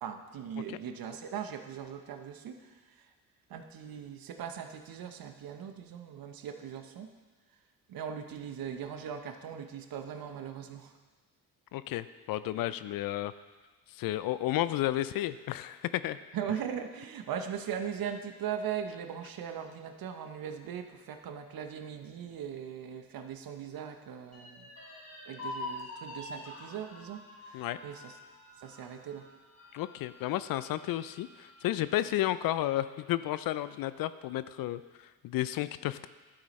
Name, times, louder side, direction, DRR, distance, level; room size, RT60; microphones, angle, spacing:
voice 1, 0.0-3.1 3.5-7.1 7.9-10.9 16.3-24.7 25.3-28.2 28.6-29.3, right 8 dB, 55° right, 7 dB, 1.0 m, -39 dB
voice 2, 11.7-13.3 13.9-16.2 27.5-27.8 29.7-36.1, left 14 dB, 55° left, 15 dB, 0.5 m, -32 dB
sound 1, 24.3-32.0 32.4-32.5 32.9-33.6, left 2 dB, 40° left, 3.2 m, -46 dB
11.5 x 8.6 x 3.2 m, 1.3 s
hypercardioid pair, 50°, 42 cm